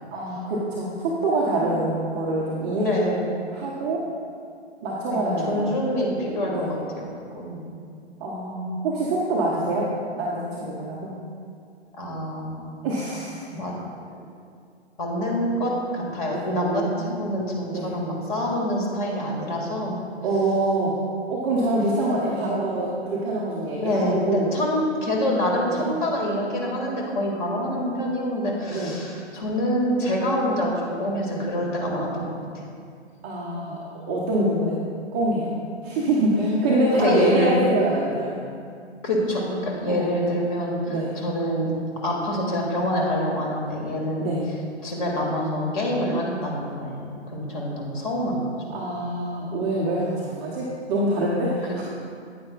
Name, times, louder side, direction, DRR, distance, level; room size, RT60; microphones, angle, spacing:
voice 1, 0.1-4.1 4.8-5.8 6.5-6.7 8.2-9.9 10.2-11.1 12.8-13.4 16.3-16.4 17.7-17.9 20.2-21.0 21.3-24.5 25.7-25.8 28.7-29.0 33.2-33.8 34.1-34.8 35.1-35.5 35.8-38.4 39.9-40.1 40.9-41.2 44.2-44.4 48.7-51.8, right 1 dB, 10° right, -6 dB, 0.3 m, -25 dB
voice 2, 2.8-3.2 5.0-5.2 5.5-7.1 7.3-7.6 11.9-12.9 13.5-13.7 15.0-20.0 23.8-32.4 36.4-37.7 39.0-41.7 42.0-44.3 44.8-48.5 51.7-51.8, left 1 dB, 45° left, -1 dB, 2.0 m, -26 dB
9.3 x 8.9 x 2.3 m, 2.3 s
figure-of-eight pair, 125°, 34 cm